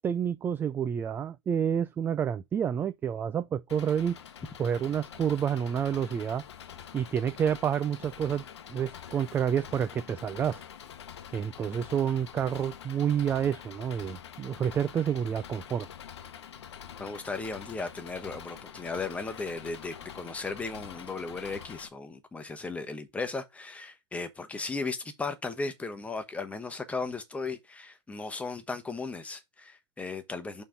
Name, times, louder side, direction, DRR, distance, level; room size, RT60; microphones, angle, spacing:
voice 1, 0.0-4.2 4.6-6.4 6.9-8.4 8.7-10.6 11.3-15.9, right 8 dB, 15° right, 0.3 m, -29 dB
Engine, 3.7-21.9, left 9 dB, 70° left, 1.0 m, -46 dB
voice 2, 17.0-30.6, left 3 dB, 10° left, 1.1 m, -36 dB
5.7 x 4.2 x 5.1 m
hypercardioid pair, 115°, 15 cm